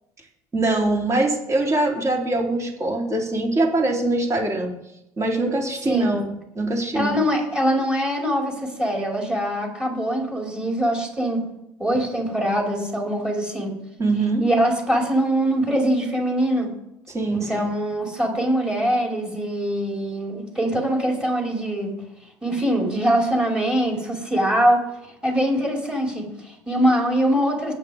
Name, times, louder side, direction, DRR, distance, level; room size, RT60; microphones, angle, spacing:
voice 1, 0.5-4.7 5.2-6.3 6.6-7.2 14.0-14.4 17.1-17.7, right 2 dB, 30° right, -1 dB, 4.0 m, -23 dB
voice 2, 5.9-6.2 6.9-11.5 11.8-13.8 14.4-16.7 17.3-21.9 22.4-24.8 25.2-27.7, equal, 10° right, -2 dB, 5.5 m, -23 dB
21.5 x 9.2 x 3.7 m, 0.84 s
supercardioid pair, 85°, 10 cm